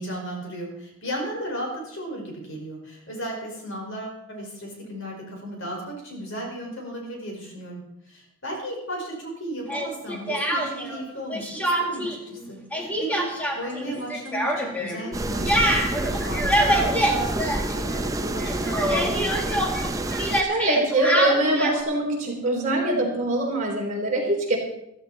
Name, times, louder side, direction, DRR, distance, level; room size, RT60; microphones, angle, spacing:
voice 1, 0.0-19.1, right 1 dB, 60° left, 0 dB, 5.1 m, -35 dB
Speech, 9.7-11.0 11.3-12.2 12.4-18.1 18.4-21.8, equal, 5° left, 2.0 m, -25 dB
sound 1, 15.1-20.4, right 1 dB, 15° right, 0.5 m, -28 dB
voice 2, 20.4-24.6, right 2 dB, 35° right, -1 dB, 3.7 m, -23 dB
15.0 x 14.0 x 4.2 m, 0.82 s
head